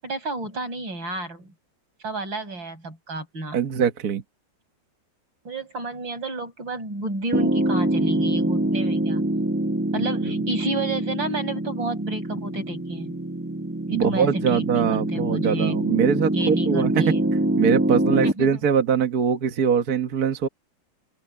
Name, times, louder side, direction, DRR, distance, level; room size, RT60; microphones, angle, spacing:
voice 1, 0.0-1.5 2.0-3.6 5.4-9.3 9.9-13.2 13.9-15.8 16.3-17.3 18.2-18.6, right 2 dB, 85° right, 7.9 m, -31 dB
voice 2, 3.5-4.2 10.2-10.4 13.9-16.9 17.6-20.5, right 7 dB, 55° right, 1.6 m, -22 dB
Piano, 7.3-18.3, right 1 dB, 10° right, 0.9 m, -25 dB
open air
omnidirectional pair, 2.0 m